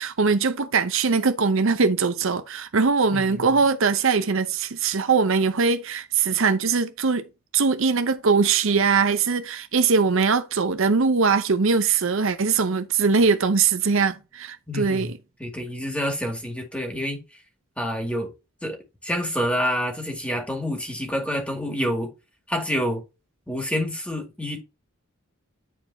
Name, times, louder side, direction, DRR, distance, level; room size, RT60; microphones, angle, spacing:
voice 1, 0.0-7.3 7.5-15.2, right 5 dB, 65° right, 0.7 m, -21 dB
voice 2, 3.1-3.6 14.7-15.1 15.4-17.4 17.8-18.3 18.6-22.1 22.5-23.0 23.5-24.6, equal, 5° left, 2.1 m, -28 dB
9.9 x 4.6 x 2.7 m
head